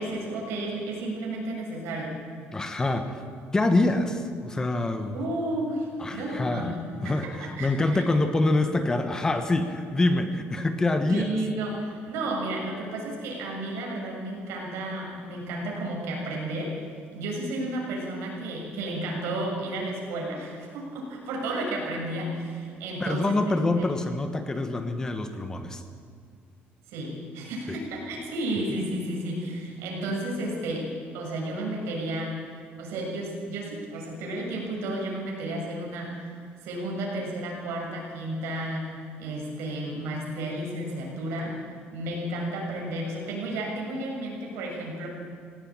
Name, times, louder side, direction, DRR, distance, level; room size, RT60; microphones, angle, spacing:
voice 1, 0.0-2.1 5.1-6.8 7.0-7.1 7.4-8.0 11.1-16.7 17.1-24.0 26.9-30.9 31.1-32.4 32.8-36.4 36.6-38.9 39.2-41.5 41.9-45.1, right 1 dB, 90° right, -1 dB, 6.8 m, -32 dB
voice 2, 2.5-3.1 3.5-5.2 6.0-6.7 7.0-11.4 23.0-25.8 27.7-27.8, left 2 dB, 15° left, 8 dB, 1.3 m, -25 dB
18.0 x 16.5 x 8.8 m, 2.1 s
cardioid pair, 155°, 4 cm